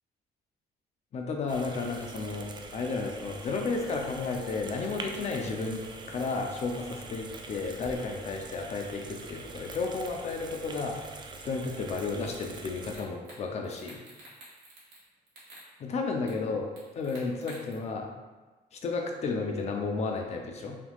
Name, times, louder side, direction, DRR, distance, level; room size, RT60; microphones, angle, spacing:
voice 1, 1.1-5.8 6.1-11.0 11.4-14.0 15.8-18.1 18.7-20.8, left 4 dB, 40° left, 2 dB, 0.5 m, -33 dB
sound 1, 1.5-13.0, right 3 dB, 25° right, 0.3 m, -44 dB
sound 2, 12.5-12.6 12.9-13.4 13.6-15.0 15.3-15.7 16.3-16.4 16.8-17.7, right 1 dB, 75° right, 1.4 m, -50 dB
3.4 x 2.9 x 2.3 m, 1.2 s
cardioid pair, 110°, 17 cm